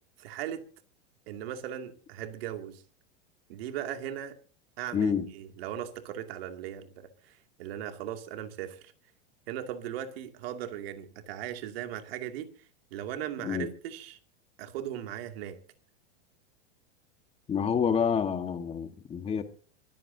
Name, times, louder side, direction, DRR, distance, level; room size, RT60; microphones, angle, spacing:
voice 1, 0.2-0.6 1.3-2.8 3.5-4.3 4.8-7.3 7.6-8.9 9.5-12.5 12.9-14.2 14.6-15.6, right 10 dB, 65° right, 2.6 m, -38 dB
voice 2, 4.9-5.2 13.4-13.7 17.5-19.4, left 7 dB, 20° left, 1.5 m, -28 dB
25.0 x 14.5 x 2.8 m
supercardioid pair, 150°, 33 cm